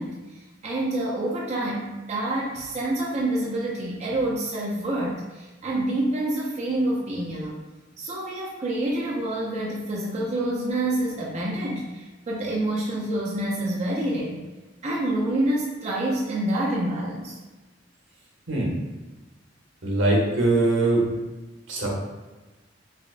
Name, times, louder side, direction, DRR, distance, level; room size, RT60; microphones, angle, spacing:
voice 1, 0.0-7.6 8.0-14.4 14.8-17.4, right 1 dB, 35° right, -4 dB, 0.4 m, -27 dB
voice 2, 19.8-21.0 21.7-21.9, right 2 dB, 75° right, -3 dB, 1.0 m, -21 dB
4.9 x 2.1 x 2.5 m, 1.1 s
head